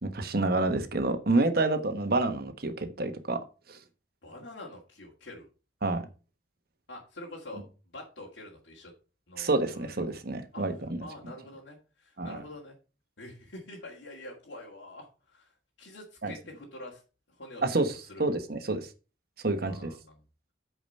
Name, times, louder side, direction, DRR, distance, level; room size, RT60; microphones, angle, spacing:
voice 1, 0.0-3.4 3.7-3.8 5.8-6.0 9.4-11.1 12.2-12.4 16.2-16.3 17.6-17.9 18.2-18.9 19.4-19.9, right 2 dB, 55° right, 1.3 m, -28 dB
voice 2, 4.2-5.5 6.9-7.6 7.9-8.9 9.3-10.1 10.5-10.6 11.0-12.8 13.2-15.5 15.8-17.0 17.4-17.8 18.1-18.2 19.6-20.2, left 1 dB, 85° left, 2.3 m, -46 dB
8.9 x 4.9 x 5.5 m
head